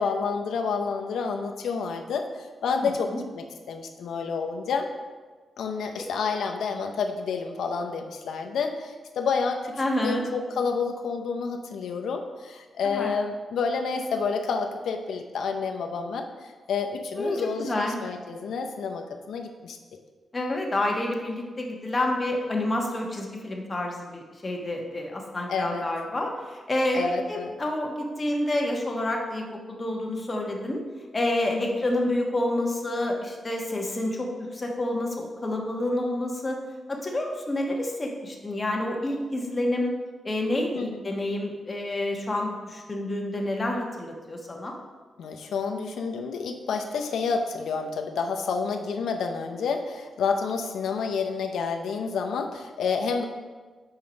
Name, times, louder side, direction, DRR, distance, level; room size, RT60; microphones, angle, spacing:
voice 1, 0.0-2.3 2.6-4.9 5.6-16.3 16.7-19.8 25.5-25.8 26.9-27.5 31.5-31.8 40.7-41.0 45.2-53.3, left 5 dB, 85° left, 4 dB, 0.6 m, -29 dB
voice 2, 2.7-3.2 6.0-6.1 9.8-10.2 12.8-13.1 17.2-18.0 20.3-27.0 27.3-30.8 31.1-36.6 36.9-39.9 40.2-44.7, left 1 dB, 30° left, 1 dB, 1.2 m, -28 dB
5.6 x 4.5 x 5.2 m, 1.3 s
cardioid pair, 80°, 0 cm